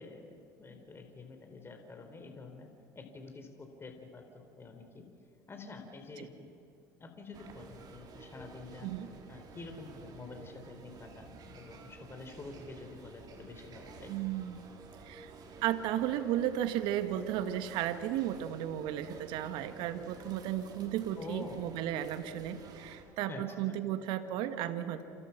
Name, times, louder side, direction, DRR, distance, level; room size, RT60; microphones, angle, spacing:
voice 1, 0.0-2.7 2.9-5.1 5.5-6.5 7.0-8.9 9.3-14.1 21.2-21.7 23.3-23.8, left 3 dB, 25° left, 5 dB, 4.4 m, -48 dB
sound 1, 7.3-23.0, right 4 dB, 50° right, 4.5 m, -52 dB
voice 2, 14.1-14.7 15.0-15.3 15.6-25.0, right 11 dB, 65° right, 9 dB, 1.9 m, -34 dB
29.0 x 28.5 x 6.1 m, 2.6 s
hypercardioid pair, 75°, 9 cm